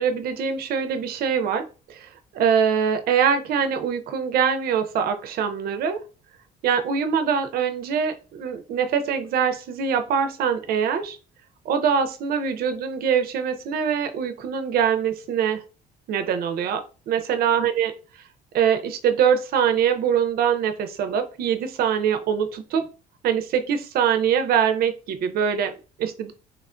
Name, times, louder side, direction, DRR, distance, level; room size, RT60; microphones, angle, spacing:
voice 1, 0.0-6.0 6.6-11.2 11.7-15.6 16.1-17.9 18.5-22.9 23.2-26.3, right 7 dB, 65° right, 8 dB, 0.5 m, -23 dB
3.2 x 2.2 x 2.4 m, 0.34 s
cardioid pair, 110°, 17 cm